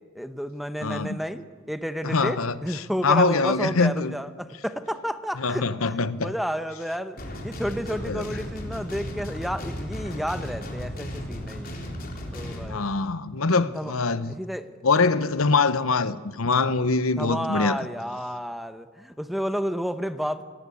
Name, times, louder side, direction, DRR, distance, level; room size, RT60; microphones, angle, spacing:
voice 1, 0.1-5.7 6.2-7.2 7.4-11.7 12.3-12.9 13.5-13.9 14.3-14.7 17.2-20.4, equal, ahead, 0.9 m, -31 dB
voice 2, 0.8-1.2 2.0-2.6 3.0-4.1 5.4-6.3 8.1-8.2 12.7-14.3 14.8-17.8, left 4 dB, 75° left, 1.0 m, -23 dB
sound 1, 7.2-12.7, equal, 45° left, 4.0 m, -35 dB
25.5 x 18.5 x 8.5 m
head